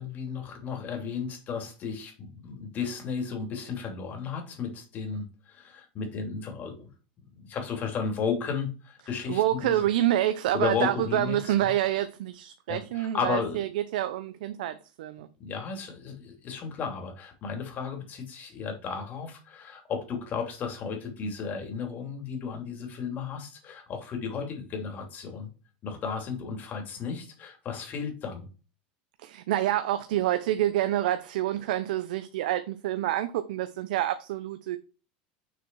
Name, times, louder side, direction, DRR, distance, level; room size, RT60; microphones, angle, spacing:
voice 1, 0.0-6.9 7.4-9.9 10.5-11.7 12.7-13.7 15.4-25.5 25.8-28.5, left 6 dB, 40° left, 2.8 m, -34 dB
voice 2, 9.3-15.3 29.2-34.8, right 13 dB, 80° right, 0.6 m, -27 dB
6.7 x 4.5 x 4.7 m
supercardioid pair, 115°, 5 cm